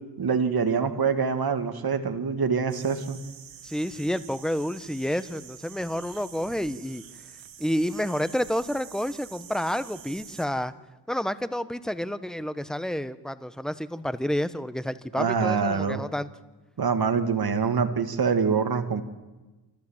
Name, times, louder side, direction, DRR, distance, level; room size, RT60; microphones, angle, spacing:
voice 1, 0.2-3.2 15.1-16.0 16.8-19.0, right 6 dB, 55° right, 8 dB, 2.0 m, -25 dB
sound 1, 2.7-10.5, right 9 dB, 90° right, 1.9 m, -47 dB
voice 2, 3.6-7.0 7.6-10.7 11.1-16.3, equal, ahead, 13 dB, 1.1 m, -29 dB
27.0 x 14.0 x 7.3 m, 1.2 s
cardioid pair, 50°, 45 cm